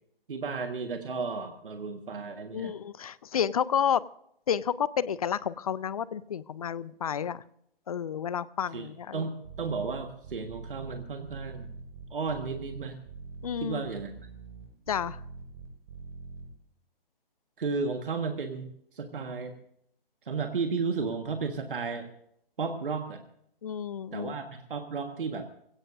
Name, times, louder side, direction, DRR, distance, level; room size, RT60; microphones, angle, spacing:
voice 1, 0.3-2.7 8.7-8.9 9.1-11.7 12.1-13.0 13.6-14.1 17.6-19.6 20.2-22.1 22.6-23.2 24.1-25.5, right 4 dB, 65° right, 6 dB, 1.5 m, -33 dB
voice 2, 2.5-4.0 4.5-7.4 7.9-9.3 13.4-13.9 14.9-15.2 23.6-24.3, left 8 dB, 40° left, 19 dB, 0.5 m, -30 dB
sound 1, 9.4-16.5, right 5 dB, 35° right, 6.1 m, -44 dB
21.5 x 17.0 x 2.6 m, 0.71 s
figure-of-eight pair, 140°, 29 cm